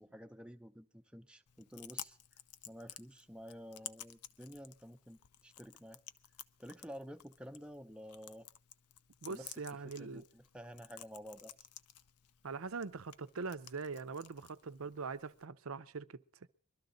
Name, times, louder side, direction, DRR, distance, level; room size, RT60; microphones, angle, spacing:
voice 1, 0.0-2.4 2.7-6.0 6.6-8.5 9.3-11.7, equal, 5° right, 0.7 m, -51 dB
Chewing mastication, 1.5-15.5, left 11 dB, 90° left, 0.7 m, -54 dB
voice 2, 9.2-10.2 12.4-16.2, right 4 dB, 65° right, 0.6 m, -42 dB
22.0 x 13.0 x 3.9 m
head